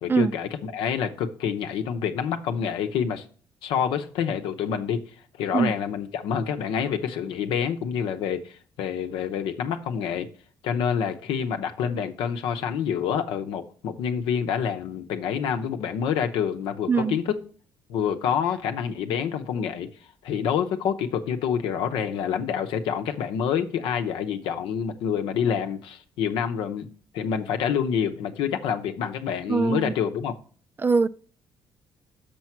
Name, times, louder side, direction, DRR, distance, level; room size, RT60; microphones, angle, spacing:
voice 1, 0.0-3.2 3.6-5.0 5.4-10.3 10.6-17.4 17.9-19.9 20.2-26.9 27.1-30.3, left 7 dB, 85° left, 0.8 m, -27 dB
voice 2, 16.9-17.2 29.5-29.9 30.8-31.1, right 5 dB, 25° right, 0.3 m, -22 dB
6.9 x 4.5 x 5.9 m
cardioid pair, 95°, 8 cm